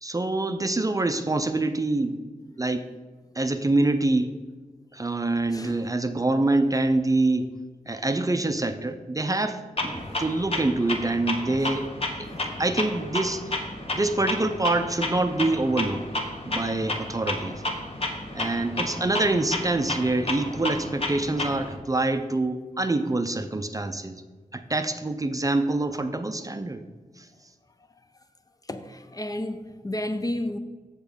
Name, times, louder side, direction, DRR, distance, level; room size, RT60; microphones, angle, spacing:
voice 1, 0.0-2.2 2.6-2.8 3.4-4.3 4.9-7.5 7.9-11.9 12.2-12.3 12.6-13.4 13.9-16.0 16.5-17.6 18.3-24.2 24.5-26.8 27.2-27.3, right 2 dB, 25° right, 8 dB, 0.5 m, -25 dB
Clock, 9.8-21.8, left 1 dB, 40° left, 1.2 m, -32 dB
voice 2, 28.7-30.6, left 1 dB, 25° left, 9 dB, 0.5 m, -32 dB
7.1 x 7.1 x 5.1 m, 1.3 s
wide cardioid pair, 85°, 15 cm